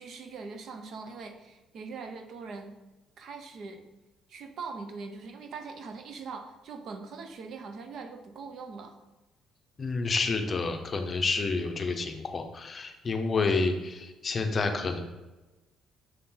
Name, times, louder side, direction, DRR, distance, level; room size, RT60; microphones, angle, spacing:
voice 1, 0.0-2.8 3.2-3.8 4.3-9.0, right 4 dB, 55° right, 6 dB, 0.7 m, -42 dB
voice 2, 9.8-15.0, left 4 dB, 30° left, 5 dB, 0.6 m, -29 dB
6.3 x 4.3 x 3.8 m, 1.1 s
cardioid pair, 150°, 0 cm